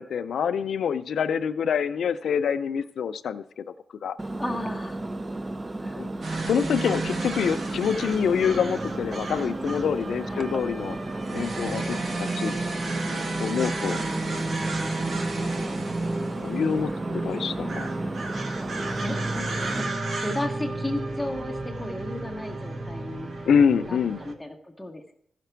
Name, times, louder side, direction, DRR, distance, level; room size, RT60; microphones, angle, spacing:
voice 1, 0.0-3.6 4.0-4.2 6.0-6.1 6.5-11.0 11.3-12.5 13.4-14.0 16.4-16.9 17.2-17.9 23.5-24.2, left 7 dB, 85° left, 11 dB, 0.4 m, -26 dB
Engine, 4.2-19.8, right 2 dB, 20° right, 0.4 m, -34 dB
voice 2, 4.4-5.0 5.8-6.2 9.7-9.8 10.3-10.4 11.3-11.7 13.1-13.2 13.5-14.1 15.3-15.7 16.9-17.7 18.9-19.5 19.7-23.3 23.8-25.1, left 1 dB, 5° left, 3 dB, 0.9 m, -35 dB
sound 1, 6.2-24.3, right 2 dB, 50° right, 1.1 m, -32 dB
14.5 x 5.9 x 4.5 m, 0.68 s
wide cardioid pair, 145°, 0 cm